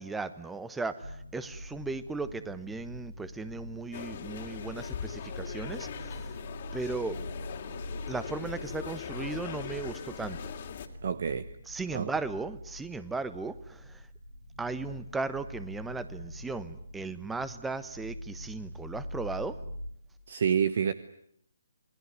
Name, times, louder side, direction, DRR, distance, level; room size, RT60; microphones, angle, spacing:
voice 1, 0.0-6.4 6.7-7.2 8.1-10.4 11.7-14.0 14.6-19.6, right 3 dB, 5° right, 14 dB, 1.2 m, -36 dB
sound 1, 1.0-19.9, equal, 90° right, 4.9 m, -44 dB
sound 2, 3.9-10.9, left 7 dB, 45° left, 2.8 m, -40 dB
voice 2, 11.0-11.5 11.9-12.1 20.3-20.9, right 7 dB, 55° right, 15 dB, 1.1 m, -28 dB
28.5 x 20.0 x 9.6 m, 0.70 s
figure-of-eight pair, 140°, 0 cm